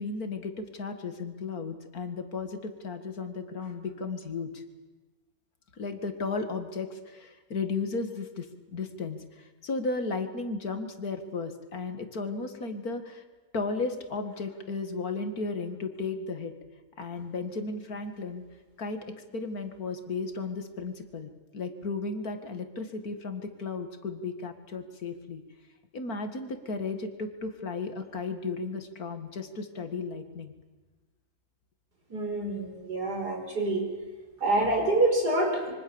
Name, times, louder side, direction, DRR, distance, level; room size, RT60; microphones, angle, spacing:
voice 1, 0.0-4.6 5.8-8.5 8.7-13.2 13.5-16.5 17.0-18.4 18.8-19.0 19.3-25.4 25.9-30.5, left 4 dB, 65° left, 8 dB, 2.5 m, -34 dB
voice 2, 32.1-33.9 34.4-35.7, right 2 dB, 80° right, 2 dB, 5.5 m, -26 dB
26.0 x 24.0 x 7.1 m, 1.2 s
omnidirectional pair, 1.7 m